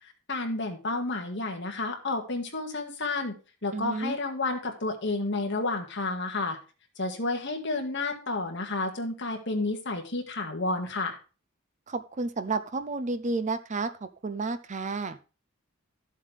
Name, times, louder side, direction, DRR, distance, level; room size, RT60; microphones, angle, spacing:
voice 1, 0.3-3.4 3.6-6.6 7.0-11.2, left 2 dB, 55° left, 3 dB, 1.9 m, -31 dB
voice 2, 3.7-4.2 11.9-15.2, right 3 dB, 35° right, 11 dB, 0.6 m, -31 dB
13.0 x 7.4 x 3.4 m, 0.33 s
head